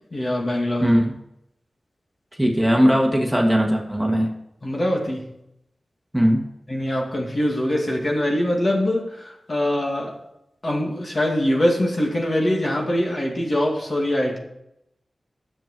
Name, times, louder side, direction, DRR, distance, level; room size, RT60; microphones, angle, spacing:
voice 1, 0.1-0.9 4.6-5.3 6.7-10.2 10.6-14.4, left 1 dB, 45° left, 0 dB, 2.3 m, -23 dB
voice 2, 0.8-1.2 2.4-4.3 6.1-6.4, equal, 5° right, 0 dB, 1.8 m, -19 dB
10.5 x 7.7 x 6.0 m, 0.81 s
wide cardioid pair, 80°, 0 cm